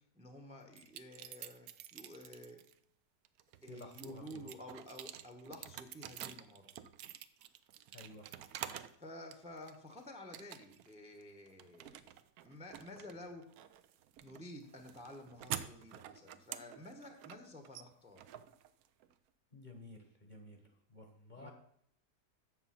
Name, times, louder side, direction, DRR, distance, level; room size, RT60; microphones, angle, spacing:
voice 1, 0.0-2.6 3.6-6.7 9.0-12.0 12.4-13.4 14.2-18.3 21.4-21.5, left 1 dB, 5° right, 5 dB, 0.8 m, -51 dB
sound 1, 0.7-2.7 3.3-9.0 9.3-9.9 10.3-10.9 11.2-19.1, right 11 dB, 70° right, 1.0 m, -48 dB
voice 2, 3.7-4.5 7.9-8.3 19.5-21.5, left 2 dB, 35° left, 3 dB, 1.0 m, -53 dB
8.1 x 7.0 x 5.7 m, 0.70 s
omnidirectional pair, 1.7 m